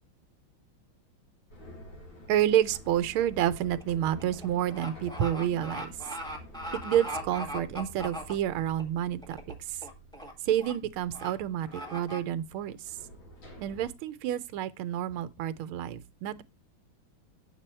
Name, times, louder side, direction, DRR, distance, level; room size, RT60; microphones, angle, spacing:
sound 1, 1.5-13.9, equal, 70° left, 2.9 m, -49 dB
voice 1, 2.3-5.9 6.8-9.4 9.7-9.8 10.4-13.0 13.6-16.4, right 11 dB, 85° right, 1.5 m, -29 dB
sound 2, 2.7-3.0 3.3-8.8 9.2-9.5 9.8-10.3 10.6-10.7 11.1-11.3 11.7-12.2, equal, ahead, 1.7 m, -39 dB
8.9 x 7.6 x 4.4 m
omnidirectional pair, 2.3 m